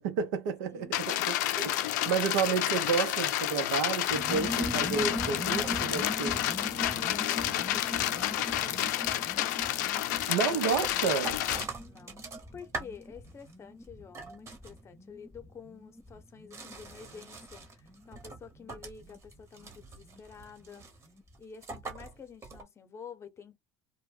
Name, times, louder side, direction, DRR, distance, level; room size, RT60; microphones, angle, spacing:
voice 1, 0.0-6.4 10.3-11.4, right 6 dB, 80° right, 0.7 m, -31 dB
voice 2, 0.7-1.3 1.5-2.3 5.3-5.4 6.4-8.9 9.4-9.5 11.0-20.9 21.4-23.6, left 6 dB, 30° left, 0.8 m, -50 dB
sound 1, 0.9-11.6, left 13 dB, 80° left, 0.4 m, -30 dB
sound 2, 4.1-20.4 20.6-20.7 20.9-21.4, left 1 dB, ahead, 0.5 m, -41 dB
sound 3, 5.6-6.2 6.7-13.5 13.8-15.1 16.0-22.6, right 3 dB, 30° right, 1.1 m, -45 dB
2.2 x 2.0 x 3.4 m
hypercardioid pair, 90°, 9 cm